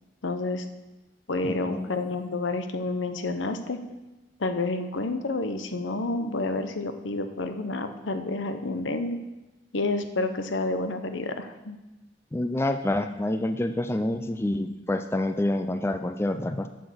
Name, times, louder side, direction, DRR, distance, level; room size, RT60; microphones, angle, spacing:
voice 1, 0.2-0.7 1.3-3.8 4.4-9.2 9.7-11.8, left 2 dB, 85° left, 8 dB, 0.8 m, -29 dB
voice 2, 1.4-1.9 12.3-16.7, left 1 dB, 15° left, 8 dB, 0.3 m, -27 dB
7.7 x 7.1 x 6.3 m, 1.1 s
head